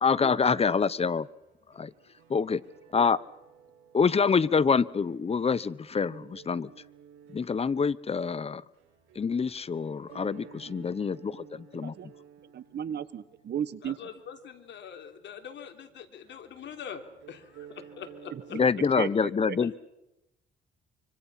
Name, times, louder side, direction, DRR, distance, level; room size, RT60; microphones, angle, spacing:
voice 1, 0.0-1.3 1.8-1.9 2.3-2.6 2.9-3.2 3.9-6.7 7.3-8.6 9.2-11.9 18.5-19.7, left 5 dB, 30° left, 18 dB, 0.9 m, -26 dB
sound 1, 1.2-19.2, right 8 dB, 85° right, 7.1 m, -54 dB
voice 2, 12.5-14.0 19.0-19.6, right 9 dB, 55° right, 15 dB, 1.5 m, -34 dB
voice 3, 13.8-18.6 19.6-19.8, left 7 dB, 65° left, 5 dB, 3.4 m, -43 dB
25.5 x 25.0 x 5.8 m, 0.90 s
cardioid pair, 90°, 20 cm